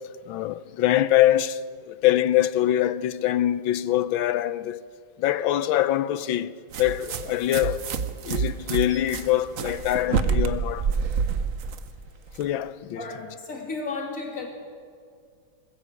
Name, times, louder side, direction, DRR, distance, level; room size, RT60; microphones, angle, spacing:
voice 1, 0.3-1.6 1.9-4.8 5.2-7.8 8.2-10.9 12.4-13.1, left 13 dB, 85° left, 1.5 m, -24 dB
sound 1, 6.7-12.4, right 6 dB, 55° right, 1.0 m, -28 dB
voice 2, 13.0-14.5, left 3 dB, 40° left, 3.4 m, -33 dB
21.0 x 16.0 x 8.3 m
omnidirectional pair, 2.1 m